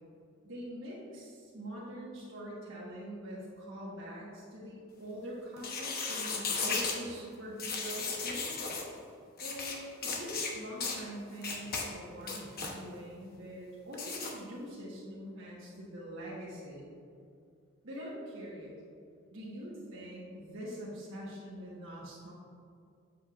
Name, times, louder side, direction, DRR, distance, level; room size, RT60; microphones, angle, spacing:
voice 1, 0.4-8.7 9.4-16.9 17.8-18.8 19.3-22.3, equal, 65° right, -6 dB, 1.4 m, -44 dB
sound 1, 5.6-7.0 7.6-8.8 9.4-9.8 10.0-10.5 10.8-11.0 11.4-11.9 12.2-12.7 13.9-14.3, left 4 dB, 45° left, 0.9 m, -35 dB
7.7 x 7.5 x 2.5 m, 2.3 s
head